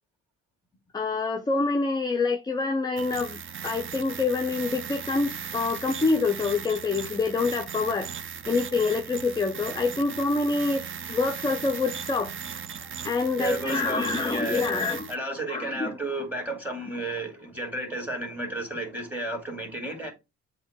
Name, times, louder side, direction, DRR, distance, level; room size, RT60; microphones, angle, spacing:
voice 1, 0.9-8.1 8.5-12.3 13.0-15.1 15.5-16.0, left 4 dB, 15° left, 0.5 m, -26 dB
sound 1, 3.0-15.1, right 7 dB, 40° right, 0.6 m, -38 dB
voice 2, 13.4-14.6 15.1-20.1, right 2 dB, 5° right, 2.2 m, -32 dB
7.8 x 2.8 x 2.2 m
cardioid pair, 90°, 30 cm